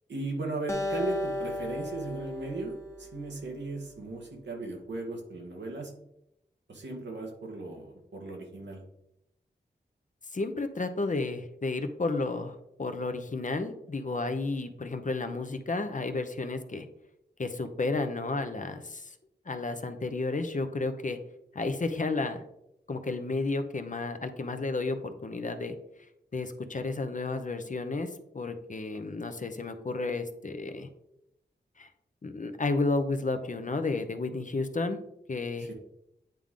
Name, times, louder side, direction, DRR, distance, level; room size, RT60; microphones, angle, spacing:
voice 1, 0.1-5.9 6.7-8.9 35.6-35.7, right 3 dB, 90° right, 1 dB, 1.4 m, -37 dB
Acoustic guitar, 0.7-4.0, left 1 dB, 15° left, 1.0 m, -36 dB
voice 2, 10.3-16.9 17.4-19.1 19.5-21.2 21.5-22.4 22.9-25.8 26.3-30.9 31.8-31.9 32.2-35.0 35.3-35.7, left 3 dB, 45° left, 8 dB, 0.8 m, -32 dB
9.0 x 3.6 x 3.7 m, 0.82 s
cardioid pair, 40°, 18 cm